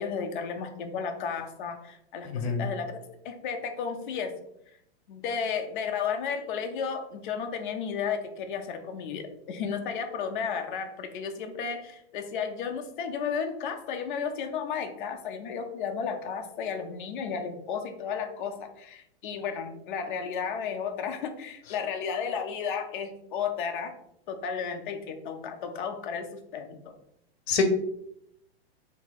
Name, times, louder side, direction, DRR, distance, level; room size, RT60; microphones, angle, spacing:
voice 1, 0.0-3.0 3.2-4.3 5.1-23.9 24.3-26.3 26.5-26.9, left 6 dB, 55° left, 5 dB, 0.7 m, -33 dB
voice 2, 2.2-2.7 27.5-27.6, left 6 dB, 75° left, 6 dB, 0.9 m, -26 dB
3.5 x 2.7 x 4.0 m, 0.76 s
supercardioid pair, 160°, 31 cm